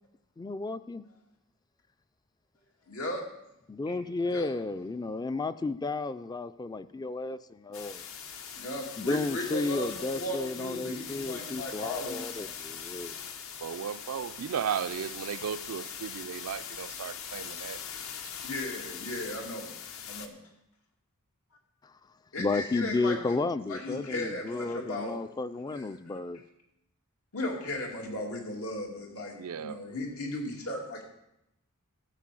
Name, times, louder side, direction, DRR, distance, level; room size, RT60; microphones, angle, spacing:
voice 1, 0.4-1.0 3.7-8.1 9.0-13.2 22.4-26.4, left 3 dB, 20° left, 0.3 m, -33 dB
voice 2, 2.9-3.2 3.9-4.0 4.2-4.5 8.5-12.5 18.4-19.7 20.0-20.3 22.3-23.4 23.7-25.2 25.7-25.9 27.3-31.0, left 1 dB, 85° left, 2.4 m, -36 dB
sound 1, 7.7-20.3, left 7 dB, 65° left, 0.9 m, -41 dB
voice 3, 13.6-17.8 29.4-29.8, right 8 dB, 85° right, 0.4 m, -35 dB
13.0 x 4.7 x 7.6 m
head